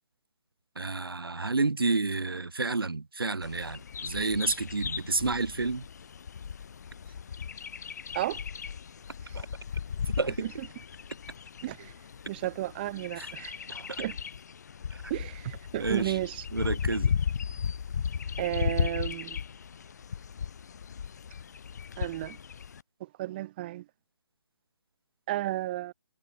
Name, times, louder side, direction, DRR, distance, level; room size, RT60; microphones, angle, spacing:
voice 1, 0.7-5.9 9.3-9.5 10.0-10.5 13.2-13.3 13.7-14.0 14.9-15.1 15.8-16.2 16.5-17.1, right 3 dB, 65° right, 3.5 m, -30 dB
Bird vocalization bird call bird song, 3.4-22.8, left 7 dB, 40° left, 2.5 m, -36 dB
voice 2, 11.6-11.9 12.3-13.6 14.0-14.1 15.1-16.4 18.4-19.4 22.0-22.4 23.0-23.9 25.3-25.9, right 15 dB, 25° right, 2.2 m, -33 dB
figure-of-eight pair, 140°, 13 cm